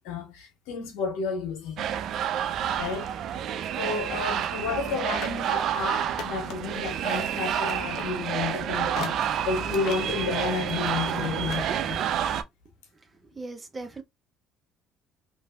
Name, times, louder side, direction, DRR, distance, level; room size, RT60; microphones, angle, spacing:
voice 1, 0.0-1.9 2.8-3.2 3.8-12.0, left 5 dB, 80° left, 1.3 m, -31 dB
sound 1, 1.8-12.4, right 9 dB, 60° right, 0.4 m, -29 dB
sound 2, 4.8-6.8 7.1-11.7 12.0-12.1, left 5 dB, 60° left, 0.9 m, -41 dB
voice 2, 12.9-14.0, right 3 dB, 25° right, 0.8 m, -40 dB
3.1 x 2.6 x 2.2 m
supercardioid pair, 80°, 0 cm